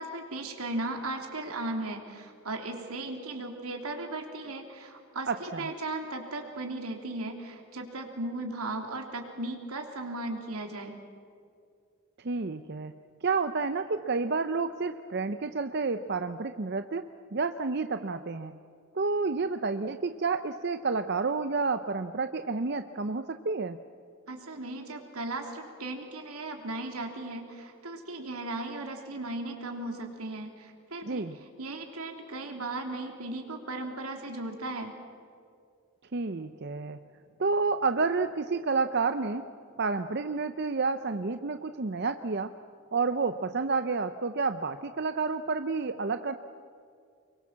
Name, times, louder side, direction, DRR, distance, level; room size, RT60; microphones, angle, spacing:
voice 1, 0.0-11.0 24.3-31.2 31.6-34.9, right 2 dB, 85° right, 3 dB, 3.2 m, -36 dB
voice 2, 5.3-5.7 12.2-12.9 13.2-17.0 17.3-18.5 18.9-23.8 31.0-31.4 36.1-37.0 37.4-39.5 39.8-42.5 42.9-46.4, right 4 dB, 50° right, 9 dB, 0.6 m, -30 dB
25.0 x 23.0 x 7.4 m, 2.3 s
head